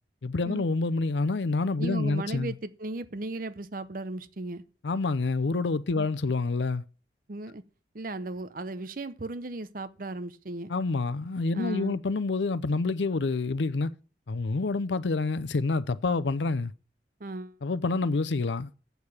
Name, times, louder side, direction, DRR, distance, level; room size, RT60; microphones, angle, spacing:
voice 1, 0.2-2.5 4.8-6.8 10.7-13.9 14.3-16.7 17.6-18.7, left 3 dB, 85° left, 0.6 m, -27 dB
voice 2, 1.8-4.6 6.0-6.1 7.3-7.6 7.9-10.7 11.5-12.0 17.2-17.6, right 2 dB, 50° right, 0.7 m, -36 dB
8.1 x 6.8 x 7.1 m
head